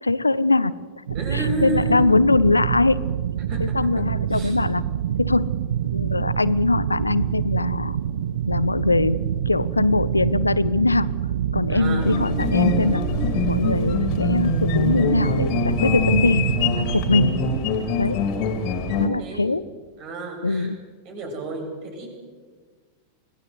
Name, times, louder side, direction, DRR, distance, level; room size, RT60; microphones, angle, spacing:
voice 1, 0.0-0.7 1.3-3.0 3.6-4.8 5.2-5.5 5.9-8.0 8.5-11.1 11.5-13.0 13.5-16.4 16.9-17.3 18.0-18.2 19.0-19.6 20.4-20.8, left 3 dB, 80° left, 17 dB, 0.7 m, -21 dB
voice 2, 1.1-2.0 3.5-4.6 11.7-12.1 19.2-19.5 20.0-20.7 21.0-22.1, right 1 dB, 40° right, 3 dB, 7.5 m, -32 dB
sound 1, 1.1-17.6, right 10 dB, 60° right, 0.7 m, -26 dB
sound 2, 12.0-19.1, left 5 dB, 45° left, 2.9 m, -25 dB
25.5 x 18.0 x 8.0 m, 1.5 s
figure-of-eight pair, 90°, 0 cm